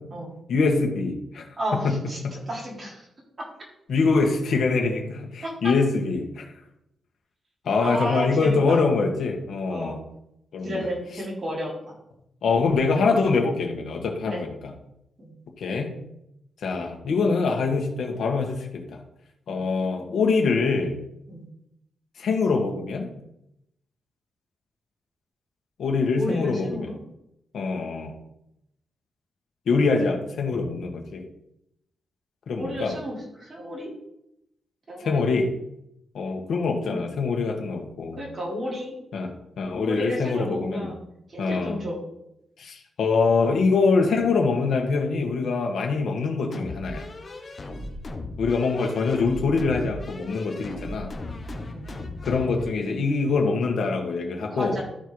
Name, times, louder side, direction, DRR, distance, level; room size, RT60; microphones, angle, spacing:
voice 1, 0.5-1.4 1.7-2.0 2.2-2.3 3.9-6.4 7.6-10.0 10.5-10.9 12.4-14.7 15.6-15.9 16.6-19.0 19.5-20.9 22.2-23.1 25.8-26.9 27.5-28.2 29.7-31.3 32.5-32.9 35.0-35.5 36.1-38.2 39.1-39.3 39.6-40.9 41.4-41.8 42.6-47.0 48.4-51.1 52.2-54.8, left 4 dB, 70° left, 2 dB, 1.8 m, -24 dB
voice 2, 1.6-3.0 5.4-5.7 7.8-8.8 9.7-10.0 10.6-11.9 14.2-14.4 15.2-15.3 19.5-19.6 21.3-21.5 26.2-27.0 32.5-33.9 34.9-35.2 36.8-37.0 38.2-38.9 39.8-41.0 41.3-42.0 51.7-51.9 54.5-54.8, equal, 30° right, -4 dB, 3.4 m, -32 dB
sound 1, 46.5-52.7, left 2 dB, 30° left, 1.2 m, -36 dB
13.0 x 4.6 x 4.8 m, 0.82 s
wide cardioid pair, 155°, 0 cm